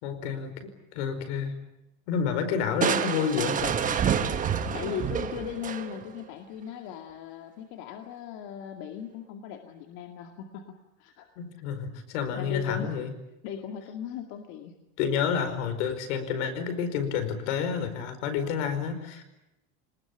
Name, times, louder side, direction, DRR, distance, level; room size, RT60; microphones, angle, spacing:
voice 1, 0.0-1.5 2.1-3.9 11.4-13.1 15.0-19.2, left 7 dB, 75° left, 9 dB, 4.9 m, -29 dB
Crushing, 2.8-6.2, right 8 dB, 20° right, 1.4 m, -28 dB
voice 2, 4.7-11.3 12.4-13.0 13.4-14.7, left 8 dB, 55° left, 4 dB, 2.2 m, -38 dB
25.0 x 20.0 x 9.8 m, 0.92 s
supercardioid pair, 155°, 35 cm